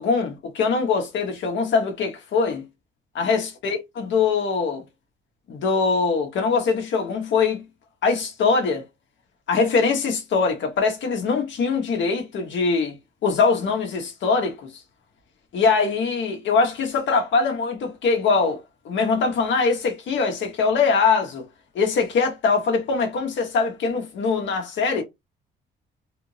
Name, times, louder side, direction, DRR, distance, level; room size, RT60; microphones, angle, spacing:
voice 1, 0.0-2.7 3.1-4.8 5.5-7.6 8.0-8.8 9.5-13.0 13.2-14.6 15.5-18.6 18.8-21.5 21.7-25.0, left 4 dB, 70° left, 1.2 m, -22 dB
3.4 x 2.5 x 3.2 m
cardioid pair, 90°, 20 cm